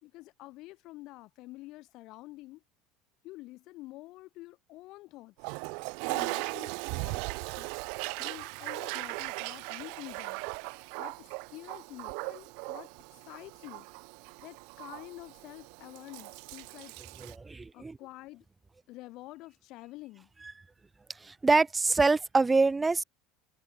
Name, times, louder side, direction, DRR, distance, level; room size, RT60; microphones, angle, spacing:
voice 1, 0.0-2.6 3.2-5.5 6.1-7.3 7.5-7.7 8.2-12.9 13.2-13.9 14.4-17.0 17.7-18.5 18.9-20.3, left 19 dB, 60° left, 2.1 m, -48 dB
Toilet flush, 5.4-17.3, right 37 dB, 70° right, 0.5 m, -38 dB
voice 2, 17.2-18.0 21.2-23.0, right 3 dB, 15° right, 0.4 m, -25 dB
hypercardioid pair, 85°, 0 cm